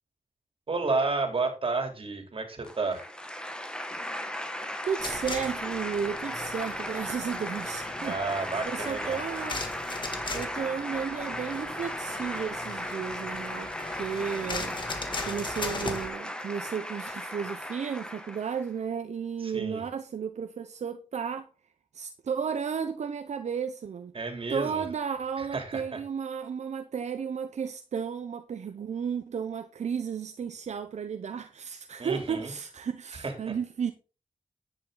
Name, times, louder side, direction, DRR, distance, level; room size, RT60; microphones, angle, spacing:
voice 1, 0.7-3.0 8.0-9.2 19.4-19.8 24.1-24.9 25.4-26.0 32.0-32.5 33.1-33.5, right 3 dB, 55° right, 3.4 m, -31 dB
sound 1, 2.6-18.7, equal, 10° left, 2.1 m, -36 dB
voice 2, 4.9-9.6 10.3-14.8 15.2-21.5 21.9-24.1 24.5-33.9, right 7 dB, 80° right, 0.9 m, -33 dB
sound 2, 5.0-16.1, left 3 dB, 45° left, 2.4 m, -39 dB
10.5 x 9.5 x 4.0 m
wide cardioid pair, 80°, 12 cm